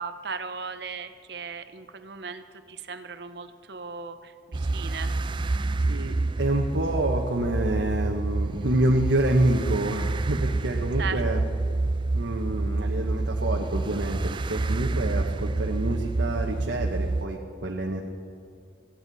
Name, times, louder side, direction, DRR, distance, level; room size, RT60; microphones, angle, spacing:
voice 1, 0.0-5.1 11.0-11.2, right 5 dB, 65° right, 10 dB, 0.8 m, -37 dB
sound 1, 4.5-17.3, right 2 dB, 25° right, 0.4 m, -28 dB
voice 2, 5.8-11.4 12.1-18.0, right 1 dB, 85° right, 0 dB, 1.1 m, -27 dB
16.5 x 15.5 x 4.1 m, 2.3 s
head